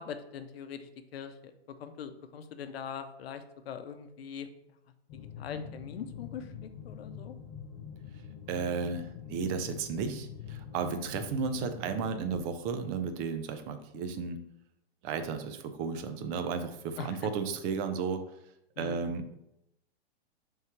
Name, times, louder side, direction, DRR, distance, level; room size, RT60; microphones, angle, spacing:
voice 1, 0.0-1.5 1.8-4.8 5.1-7.4 10.8-11.0 13.9-14.1 17.0-17.3 18.8-19.0, left 7 dB, 70° left, 9 dB, 0.8 m, -42 dB
sound 1, 5.1-12.4, left 8 dB, 20° left, 0.3 m, -45 dB
voice 2, 8.5-14.4 15.0-18.2 18.8-19.4, right 5 dB, 30° right, 9 dB, 0.5 m, -34 dB
5.6 x 3.7 x 4.6 m, 0.83 s
hypercardioid pair, 135°, 31 cm